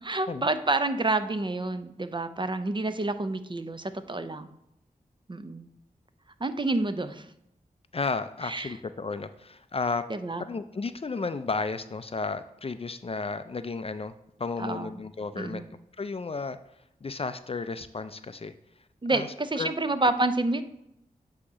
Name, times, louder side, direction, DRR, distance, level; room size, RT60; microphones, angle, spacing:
voice 1, 0.0-4.5 5.3-5.7 6.4-7.3 8.4-8.7 10.1-10.4 14.6-14.9 15.4-15.7 19.0-20.6, right 2 dB, 30° right, 10 dB, 0.6 m, -28 dB
voice 2, 7.9-10.1 10.4-14.1 14.4-15.6 16.0-16.6 17.0-18.5 19.1-19.3 19.6-19.7, left 4 dB, 40° left, 12 dB, 0.4 m, -33 dB
8.4 x 2.9 x 4.9 m, 0.81 s
cardioid pair, 40°, 15 cm